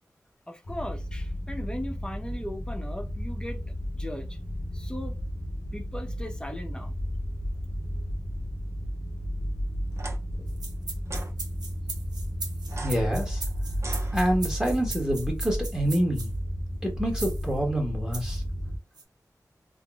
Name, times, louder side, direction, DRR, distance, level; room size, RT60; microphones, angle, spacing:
voice 1, 0.5-4.4 4.7-5.2 5.7-6.9, equal, 15° left, 0.8 m, -38 dB
sound 1, 0.6-18.8, equal, 45° left, 0.7 m, -33 dB
sound 2, 9.9-10.2 11.1-11.3 12.6-14.7, right 2 dB, 45° right, 0.6 m, -41 dB
sound 3, 10.5-16.3 17.2-17.5 18.1-18.4 19.0-19.1, right 3 dB, 85° right, 0.7 m, -38 dB
voice 2, 12.8-13.4 14.1-16.3 16.8-18.4, equal, 10° right, 1.2 m, -27 dB
3.6 x 2.1 x 2.3 m
wide cardioid pair, 60°, 7 cm